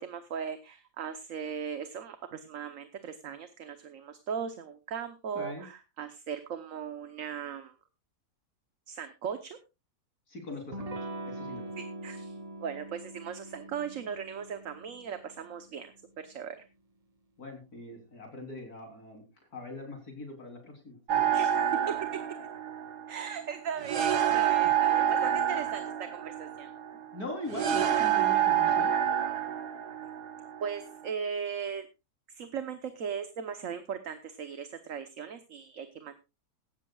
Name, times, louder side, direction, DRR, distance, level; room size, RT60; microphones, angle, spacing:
voice 1, 0.0-7.7 8.9-9.6 11.8-16.6 21.3-21.9 23.1-26.7 30.6-31.9 32.3-36.1, right 7 dB, 55° right, 9 dB, 1.3 m, -38 dB
voice 2, 5.3-5.7 10.3-10.9 11.2-11.7 17.4-19.2 19.5-21.3 24.6-24.7 27.1-28.9, left 2 dB, 65° left, 3 dB, 4.1 m, -41 dB
Electric guitar / Strum, 10.7-16.1, right 2 dB, 30° right, 0.9 m, -43 dB
sound 1, 21.1-31.1, right 10 dB, 75° right, 1.8 m, -28 dB
18.0 x 14.0 x 2.4 m, 0.27 s
omnidirectional pair, 1.7 m